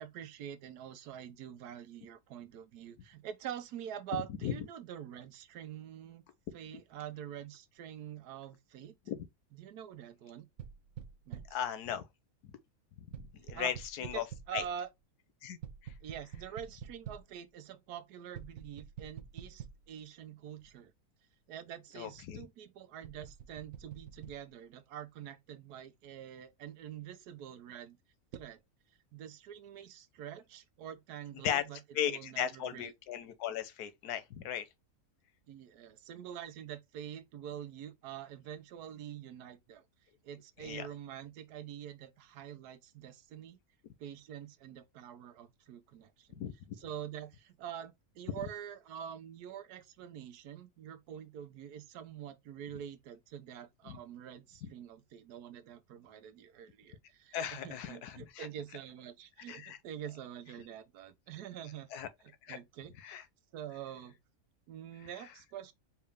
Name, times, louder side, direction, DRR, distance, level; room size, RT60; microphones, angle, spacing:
voice 1, 0.0-6.2 6.5-8.9 9.5-10.5 11.3-11.4 13.5-13.7 14.0-14.9 16.0-20.9 21.5-28.0 28.3-28.6 29.1-31.8 32.1-32.9 35.5-39.8 40.2-43.6 44.0-46.4 46.8-61.9 62.2-62.9 63.5-64.2 64.7-65.7, right 9 dB, 85° right, 1.2 m, -46 dB
sound 1, 10.6-11.7 13.1-14.8 15.6-17.3 18.3-20.0 20.6-20.7 23.0-24.4 28.3-28.5, right 8 dB, 60° right, 0.9 m, -48 dB
voice 2, 11.5-12.1 12.4-12.5 13.0-13.1 13.3-14.2 14.5-14.6 15.4-15.6 15.8-15.9 22.0-22.5 31.4-31.6 31.9-34.6 40.6-40.9 46.4-46.5 53.9-54.0 54.6-54.7 57.3-58.5 59.5-59.8 61.9-62.1 62.4-62.6 63.0-63.2, left 9 dB, 90° left, 1.3 m, -37 dB
4.7 x 2.7 x 3.4 m
omnidirectional pair, 1.6 m